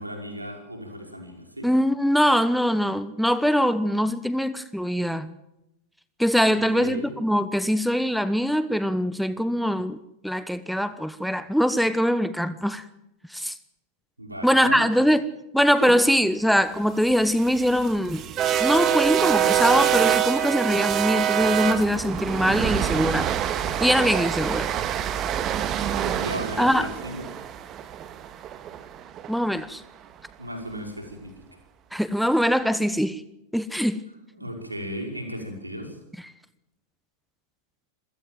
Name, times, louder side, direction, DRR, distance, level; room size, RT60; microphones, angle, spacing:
voice 1, 0.0-1.7 6.5-7.1 14.2-14.8 15.8-15.9 25.8-27.3 30.4-31.6 34.3-36.0, equal, 85° right, 4 dB, 5.5 m, -35 dB
voice 2, 1.6-5.3 6.2-12.8 13.3-13.5 14.4-15.3 15.5-18.2 18.6-23.3 23.8-24.7 26.6-26.9 29.3-29.8 31.9-33.2 33.5-34.0, equal, ahead, 13 dB, 1.1 m, -22 dB
sound 1, 17.1-29.3, right 10 dB, 30° right, 2.0 m, -25 dB
27.0 x 16.0 x 7.6 m, 0.88 s
figure-of-eight pair, 90°, 0 cm